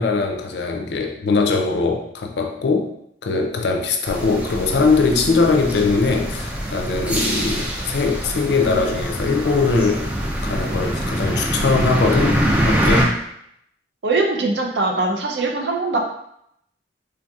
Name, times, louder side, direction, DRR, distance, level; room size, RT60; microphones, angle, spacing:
voice 1, 0.0-2.9 3.2-10.1 10.4-12.4 12.7-13.2, left 4 dB, 65° left, 3 dB, 0.4 m, -21 dB
sound 1, 4.1-13.0, equal, 10° right, 0.3 m, -24 dB
voice 2, 14.0-16.0, right 3 dB, 70° right, 2 dB, 0.5 m, -22 dB
3.4 x 2.7 x 2.3 m, 0.74 s
head